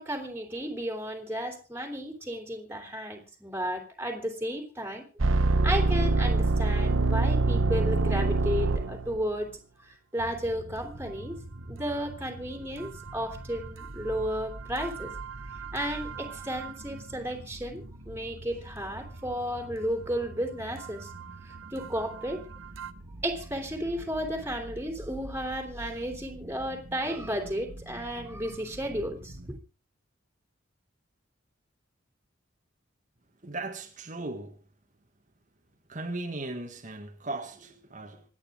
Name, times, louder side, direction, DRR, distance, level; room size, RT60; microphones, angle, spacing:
voice 1, 0.0-5.0 5.6-9.5 9.9-11.4 11.7-15.1 15.7-21.1 21.7-22.4 23.2-29.3, equal, 10° right, 3.1 m, -33 dB
sound 1, 5.2-9.2 14.8-16.2 16.5-16.7 22.8-22.9, right 3 dB, 90° right, 0.9 m, -25 dB
sound 2, 10.2-29.6, right 1 dB, 70° right, 1.8 m, -45 dB
voice 2, 33.4-34.6 35.9-38.2, right 2 dB, 40° right, 1.8 m, -37 dB
26.5 x 9.7 x 3.6 m
head